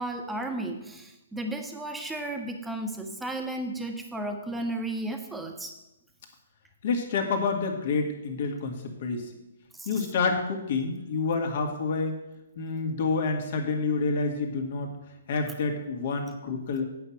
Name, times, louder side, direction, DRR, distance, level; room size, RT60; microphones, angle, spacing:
voice 1, 0.0-5.7 9.8-9.9, right 1 dB, 5° right, 4 dB, 1.2 m, -34 dB
voice 2, 6.8-9.3 9.9-12.2 12.6-14.9 15.3-16.8, left 4 dB, 55° left, 4 dB, 2.1 m, -28 dB
9.0 x 5.8 x 7.8 m, 0.94 s
hypercardioid pair, 135°, 0 cm